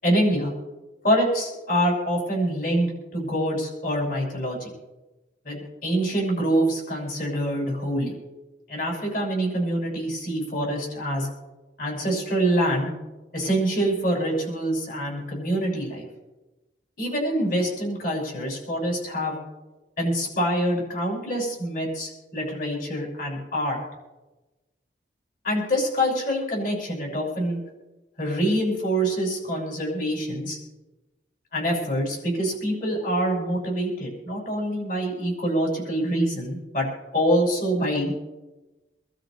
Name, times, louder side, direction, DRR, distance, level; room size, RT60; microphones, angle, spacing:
voice 1, 0.0-0.5 1.0-4.7 5.4-8.1 8.7-11.3 11.8-12.9 13.3-16.1 17.0-19.3 20.0-23.8 25.4-27.6 28.2-30.6 31.5-36.9 37.1-38.1, equal, 50° left, -2 dB, 6.9 m, -25 dB
27.0 x 13.0 x 3.3 m, 1.1 s
head